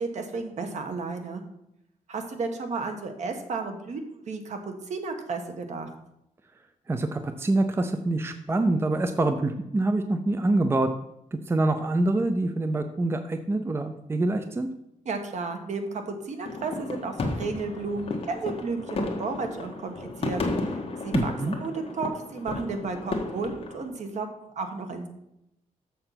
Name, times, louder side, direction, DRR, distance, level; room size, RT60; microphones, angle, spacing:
voice 1, 0.0-1.4 2.1-5.9 15.0-20.4 20.7-21.3 21.6-25.1, right 4 dB, 60° right, 6 dB, 1.4 m, -33 dB
voice 2, 6.9-10.9 11.3-14.7 21.1-21.6, right 2 dB, 20° right, 8 dB, 0.5 m, -25 dB
sound 1, 16.5-23.9, left 2 dB, 45° left, 1.3 m, -33 dB
6.9 x 6.7 x 5.8 m, 0.81 s
wide cardioid pair, 145°, 13 cm